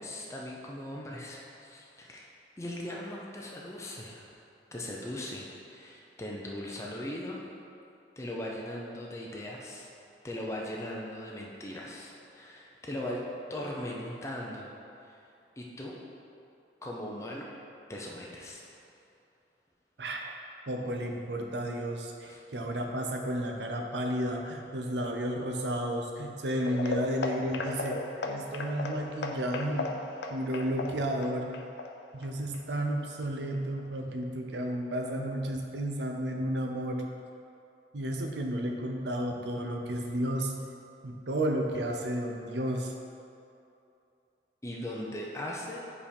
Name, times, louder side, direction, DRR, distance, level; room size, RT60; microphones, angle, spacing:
voice 1, 0.0-2.3 2.6-4.3 4.7-7.4 8.2-9.9 10.2-14.7 15.0-15.2 15.6-16.0 16.8-17.5 17.9-18.6 22.3-22.4 44.6-45.8, left 1 dB, 15° left, -3 dB, 0.6 m, -39 dB
voice 2, 20.7-29.9 30.3-31.5 32.1-37.1 37.9-40.5 41.0-42.9, right 1 dB, 80° right, 2 dB, 0.6 m, -32 dB
sound 1, 26.6-33.2 33.5-33.8 34.2-34.3 34.8-34.9, left 3 dB, 80° left, 0.5 m, -37 dB
5.0 x 4.2 x 5.2 m, 2.6 s
head